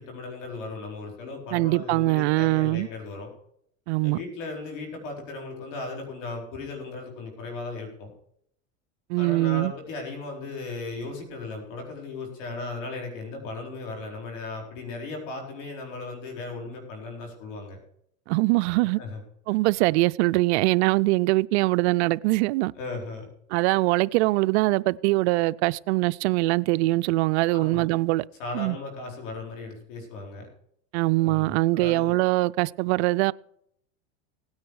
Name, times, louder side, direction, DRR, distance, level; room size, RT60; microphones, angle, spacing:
voice 1, 0.0-3.3 4.0-8.1 9.2-17.8 19.0-19.2 22.7-23.3 27.5-27.9 28.4-30.5 31.2-32.2, left 3 dB, 70° left, 4.4 m, -36 dB
voice 2, 1.5-2.9 3.9-4.2 9.1-9.7 18.3-19.0 19.5-22.7 23.5-28.2 28.5-28.8 30.9-33.3, right 21 dB, 60° right, 0.5 m, -22 dB
17.0 x 9.6 x 4.8 m
supercardioid pair, 130°, 39 cm